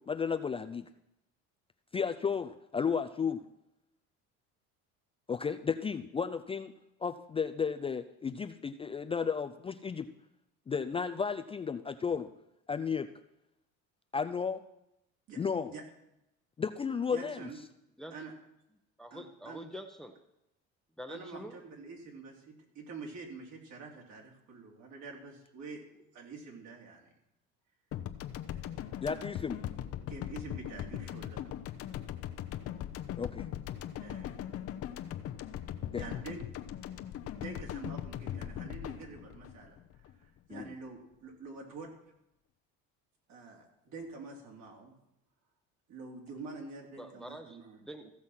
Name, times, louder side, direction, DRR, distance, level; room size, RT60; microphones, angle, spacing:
voice 1, 0.1-0.9 1.9-3.4 5.3-6.7 7.0-10.1 10.7-12.3 12.7-13.1 14.1-14.6 15.4-15.7 16.6-17.5 29.0-29.6 33.2-33.5 35.9-36.0 40.5-40.7, left 6 dB, 20° left, 7 dB, 0.4 m, -33 dB
voice 2, 17.1-17.6 18.1-18.3 19.1-19.6 21.1-27.1 28.5-28.6 30.1-31.5 34.0-34.5 36.0-36.4 37.4-39.8 40.2-41.9 43.3-44.9 45.9-47.8, right 4 dB, 60° right, 0 dB, 3.2 m, -46 dB
voice 3, 19.0-20.2 21.0-21.6 47.0-48.1, equal, ahead, 7 dB, 0.9 m, -45 dB
sound 1, 27.9-40.4, left 11 dB, 50° left, 0.8 m, -40 dB
15.0 x 6.2 x 5.7 m, 0.84 s
cardioid pair, 110°, 31 cm